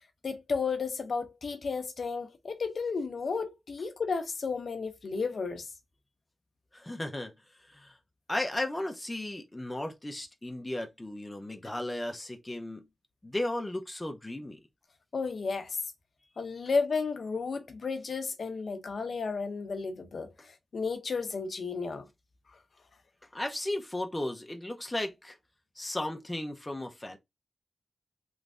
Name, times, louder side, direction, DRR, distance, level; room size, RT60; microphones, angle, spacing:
voice 1, 0.2-5.7 15.1-15.8 16.4-22.0, left 4 dB, 60° left, 0.7 m, -33 dB
voice 2, 6.7-7.3 7.7-8.0 8.3-12.8 13.2-14.6 23.3-25.4 25.8-27.2, left 1 dB, 15° left, 0.6 m, -35 dB
3.3 x 3.1 x 2.5 m
wide cardioid pair, 130°, 0 cm